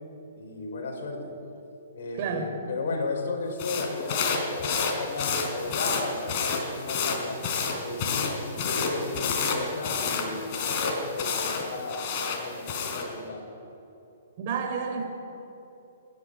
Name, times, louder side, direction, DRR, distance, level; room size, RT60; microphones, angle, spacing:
voice 1, 0.4-1.3 1.9-7.4 7.8-12.0 12.3-13.4, left 3 dB, 65° left, 0 dB, 5.8 m, -35 dB
voice 2, 2.1-2.5 14.4-15.0, right 5 dB, 45° right, 3 dB, 4.8 m, -30 dB
sound 1, 3.6-13.1, left 5 dB, 45° left, 3.8 m, -29 dB
25.0 x 11.0 x 10.0 m, 2.9 s
hypercardioid pair, 140°, 0 cm